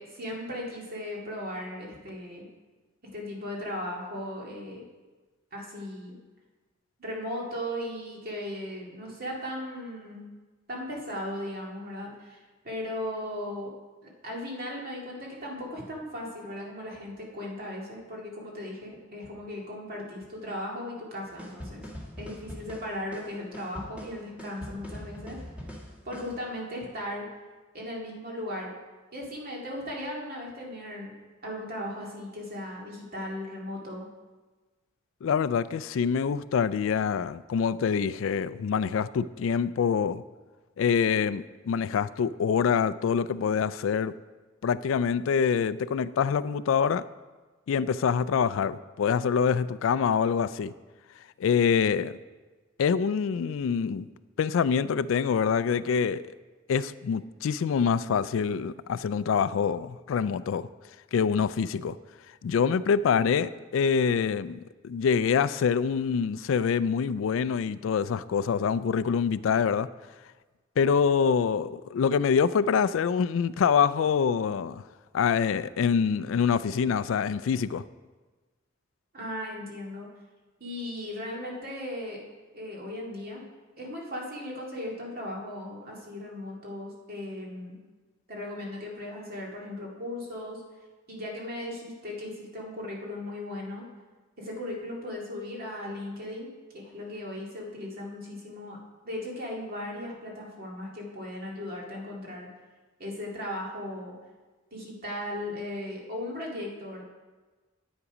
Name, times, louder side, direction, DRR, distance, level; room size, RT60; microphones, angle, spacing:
voice 1, 0.0-2.4 3.1-4.9 5.5-6.2 7.0-10.2 10.7-13.7 14.0-21.9 22.2-25.4 26.0-27.3 27.7-28.7 29.1-31.1 31.4-34.1 79.1-80.1 80.6-82.2 82.5-83.5 83.8-87.8 88.3-90.6 91.1-93.9 94.4-98.8 99.0-102.5 103.0-104.1 104.7-107.0, left 1 dB, 50° right, -2 dB, 2.1 m, -37 dB
sound 1, 21.4-26.4, equal, 5° right, 1.7 m, -42 dB
voice 2, 35.2-40.2 40.8-44.1 44.6-47.0 47.7-50.7 51.4-52.1 52.8-54.1 54.4-56.2 56.7-60.7 61.1-62.0 62.4-69.9 70.8-74.8 75.1-77.8, left 6 dB, 75° left, 16 dB, 0.3 m, -25 dB
9.8 x 8.2 x 5.0 m, 1.3 s
head